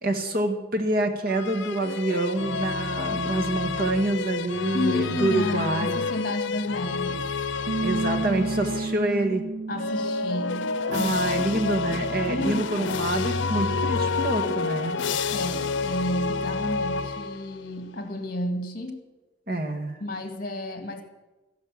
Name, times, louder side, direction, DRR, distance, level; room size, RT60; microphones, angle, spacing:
voice 1, 0.0-6.0 7.8-9.5 10.9-15.0 19.5-20.0, right 2 dB, 50° right, 6 dB, 1.8 m, -26 dB
sound 1, 1.3-9.1 9.7-17.7, left 4 dB, 90° left, 0.6 m, -29 dB
voice 2, 4.7-7.3 9.7-10.7 11.0-11.1 12.3-12.7 15.3-19.0 20.0-21.0, left 1 dB, 50° left, 7 dB, 2.3 m, -31 dB
Bass guitar, 7.7-13.9, right 3 dB, 90° right, 0.5 m, -34 dB
14.5 x 11.5 x 7.5 m, 1.1 s
head